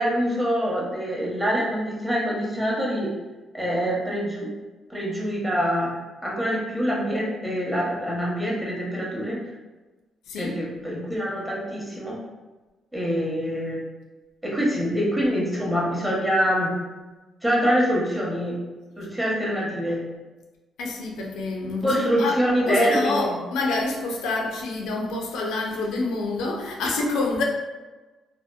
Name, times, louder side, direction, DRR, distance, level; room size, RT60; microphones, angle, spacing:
voice 1, 0.0-3.1 3.5-4.5 4.9-5.9 6.2-9.4 10.4-12.2 12.9-13.8 14.4-16.7 17.4-18.6 19.0-20.0 21.8-23.4, equal, 5° right, -5 dB, 0.8 m, -25 dB
voice 2, 10.3-10.6 20.8-22.4 22.7-27.4, left 3 dB, 90° left, 0 dB, 0.4 m, -27 dB
2.7 x 2.0 x 2.3 m, 1.2 s
cardioid pair, 90°, 0 cm